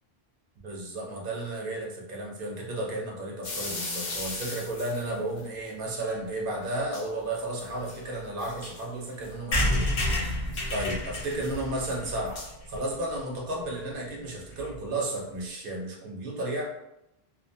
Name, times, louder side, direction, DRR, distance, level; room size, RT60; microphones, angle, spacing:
voice 1, 0.6-9.9 10.7-16.7, right 1 dB, 60° right, -1 dB, 0.8 m, -33 dB
sound 1, 3.4-5.5 6.6-6.7 6.9-7.1 7.4-9.7 10.2-12.5, left 2 dB, 55° left, 0.6 m, -39 dB
sound 2, 9.5-13.2 13.6-13.7 13.9-14.0 14.2-14.3 14.5-14.8, left 1 dB, 75° left, 1.0 m, -29 dB
2.7 x 2.1 x 2.6 m, 0.86 s
omnidirectional pair, 1.0 m